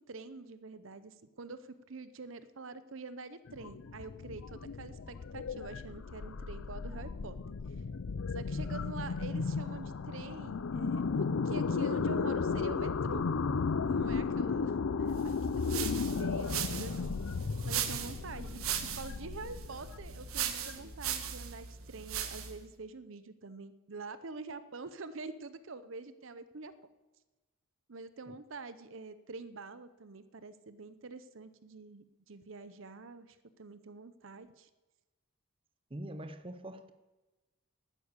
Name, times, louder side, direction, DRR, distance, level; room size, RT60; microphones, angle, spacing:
voice 1, 0.0-7.4 8.3-13.3 13.8-15.3 15.7-17.2 17.7-26.7 27.9-34.7, right 3 dB, 65° right, 14 dB, 0.7 m, -46 dB
sound 1, 3.5-21.3, left 4 dB, 70° left, 0.5 m, -34 dB
sound 2, 15.3-22.6, right 9 dB, 85° right, 1.3 m, -38 dB
voice 2, 35.9-36.9, right 1 dB, 25° right, 10 dB, 0.7 m, -43 dB
12.0 x 10.0 x 8.1 m, 1.1 s
head